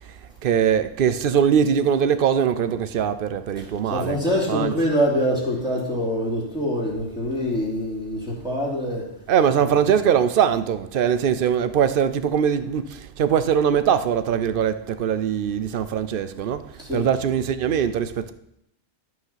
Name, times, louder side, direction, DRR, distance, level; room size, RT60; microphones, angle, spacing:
voice 1, 0.4-4.2 4.5-4.7 9.3-16.6 16.9-18.3, right 8 dB, 55° right, 0.7 m, -21 dB
voice 2, 3.6-9.1 9.6-9.7 16.8-17.1, equal, 5° right, 2.9 m, -25 dB
11.5 x 6.2 x 5.7 m
omnidirectional pair, 1.2 m